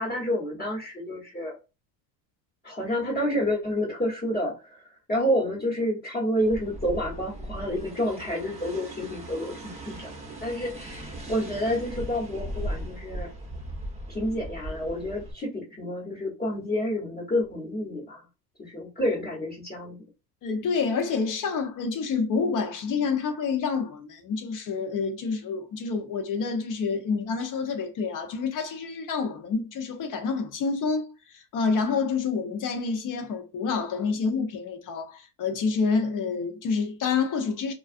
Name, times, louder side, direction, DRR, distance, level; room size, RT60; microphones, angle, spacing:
voice 1, 0.0-1.5 2.6-10.1 10.4-13.3 14.1-18.2 18.6-20.0, equal, 20° left, 1.0 m, -29 dB
sound 1, 6.4-15.3, right 1 dB, 15° right, 0.7 m, -38 dB
voice 2, 20.4-37.7, left 5 dB, 40° left, 0.7 m, -28 dB
2.3 x 2.3 x 2.4 m
supercardioid pair, 105°, 48 cm